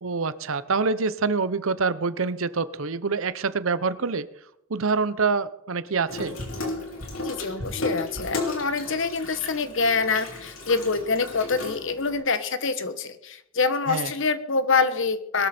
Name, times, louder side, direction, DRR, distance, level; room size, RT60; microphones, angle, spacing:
voice 1, 0.0-4.3 4.7-6.4 13.9-14.1, right 4 dB, 70° right, 15 dB, 0.8 m, -26 dB
Water tap faucet / Sink (filling or washing), 6.1-12.2, left 2 dB, 80° left, 4.5 m, -34 dB
voice 2, 7.2-15.5, left 4 dB, 65° left, 11 dB, 1.2 m, -25 dB
21.0 x 13.0 x 4.4 m, 0.76 s
head